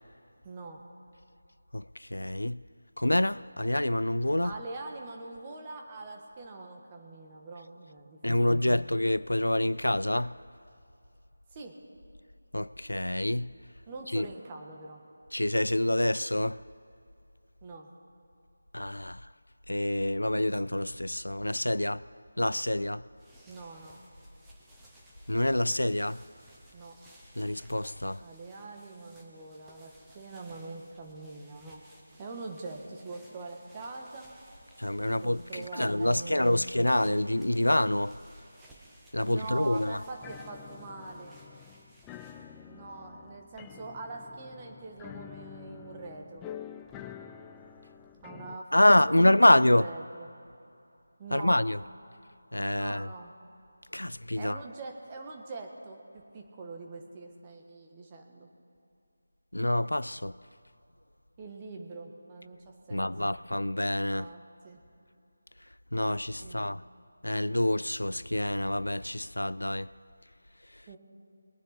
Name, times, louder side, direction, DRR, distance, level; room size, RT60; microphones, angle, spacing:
voice 1, 0.4-0.8 4.4-8.8 11.5-11.7 13.9-15.0 17.6-17.9 23.5-24.0 26.7-26.9 28.2-31.8 32.2-34.3 35.1-36.7 38.6-38.7 39.3-41.4 42.7-46.4 48.2-50.3 51.2-51.6 52.7-53.3 54.4-58.5 61.4-63.4 64.1-64.8 66.4-66.7 70.9-71.0, right 3 dB, 20° right, 1.5 m, -43 dB
voice 2, 1.7-2.6 3.0-4.5 8.2-10.4 12.5-13.6 14.1-14.3 15.3-16.6 18.7-19.2 19.7-22.0 22.4-23.0 25.3-26.2 27.4-28.2 34.8-38.2 39.1-40.0 48.7-49.9 51.3-51.8 52.5-53.1 53.9-54.6 59.5-60.4 62.9-64.3 65.9-66.8 67.2-69.9, left 1 dB, 90° left, 0.3 m, -26 dB
sound 1, 23.0-42.6, right 1 dB, 5° right, 1.3 m, -59 dB
sound 2, 40.2-48.6, left 9 dB, 10° left, 0.4 m, -47 dB
22.0 x 9.2 x 4.3 m
figure-of-eight pair, 165°, 0 cm